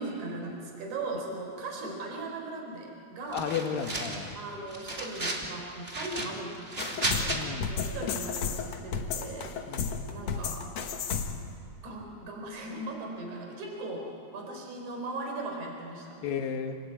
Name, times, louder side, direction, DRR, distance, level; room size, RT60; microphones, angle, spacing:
voice 1, 0.0-3.5 4.4-10.7 11.8-16.2, right 2 dB, 55° right, 1 dB, 5.5 m, -39 dB
voice 2, 3.3-4.4 7.3-7.7 9.7-9.9 16.2-16.8, left 7 dB, 75° left, 6 dB, 3.0 m, -33 dB
sound 1, 3.3-4.3 4.7-5.5 5.8-7.4, right 2 dB, 20° right, 2.2 m, -34 dB
sound 2, 6.8-11.5, left 6 dB, 60° left, 2.0 m, -33 dB
27.0 x 19.5 x 8.9 m, 2.5 s
omnidirectional pair, 4.2 m